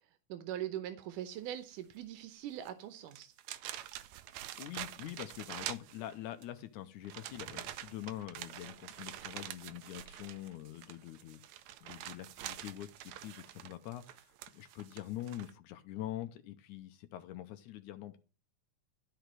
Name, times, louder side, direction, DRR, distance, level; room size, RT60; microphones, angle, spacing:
voice 1, 0.0-3.3, right 11 dB, 90° right, 2.4 m, -42 dB
sound 1, 2.6-2.7 3.1-6.4 7.0-15.5, right 13 dB, 75° right, 1.8 m, -46 dB
voice 2, 4.6-11.4 11.8-18.2, left 13 dB, 80° left, 2.2 m, -45 dB
12.5 x 5.1 x 7.5 m
omnidirectional pair, 3.6 m